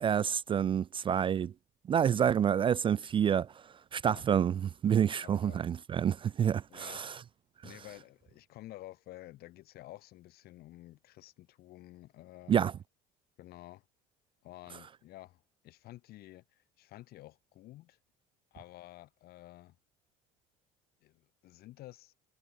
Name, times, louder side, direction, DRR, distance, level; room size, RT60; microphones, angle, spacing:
voice 1, 0.0-1.5 1.9-3.5 3.9-7.1 12.5-12.7, right 8 dB, 30° right, 0.4 m, -28 dB
voice 2, 5.2-5.6 6.7-7.1 7.6-12.6 13.4-13.9 14.4-18.0 18.5-19.8 21.0-22.1, left 16 dB, 60° left, 5.6 m, -51 dB
supercardioid pair, 90°, 18 cm